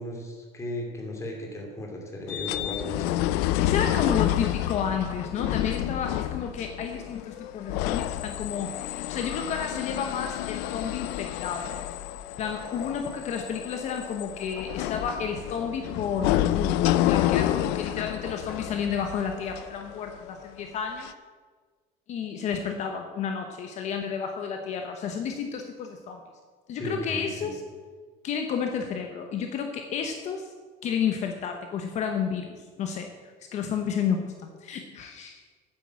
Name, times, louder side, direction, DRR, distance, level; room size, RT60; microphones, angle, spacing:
voice 1, 0.0-3.2 26.8-27.5, left 1 dB, 15° left, 1 dB, 2.6 m, -36 dB
sound 1, 2.3-20.4 21.0-21.1, left 14 dB, 75° left, 0.5 m, -29 dB
voice 2, 3.6-11.8 12.4-21.1 22.1-26.2 26.7-27.6 28.2-30.5 30.8-35.4, left 7 dB, 40° left, 4 dB, 1.0 m, -31 dB
9.4 x 9.1 x 7.5 m, 1.5 s
cardioid pair, 160°, 17 cm